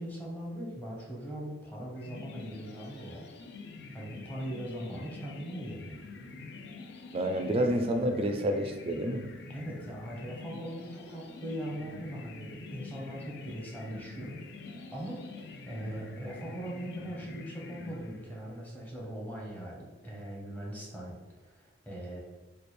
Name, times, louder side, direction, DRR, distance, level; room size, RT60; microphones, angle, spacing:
voice 1, 0.0-3.2 3.9-6.1 9.5-15.2 15.7-22.2, right 1 dB, 10° left, -4 dB, 0.8 m, -40 dB
sound 1, 2.0-18.5, left 3 dB, 60° left, 0.4 m, -46 dB
voice 2, 7.1-9.2, right 1 dB, 30° right, 5 dB, 0.3 m, -29 dB
3.2 x 2.2 x 4.2 m, 1.3 s
head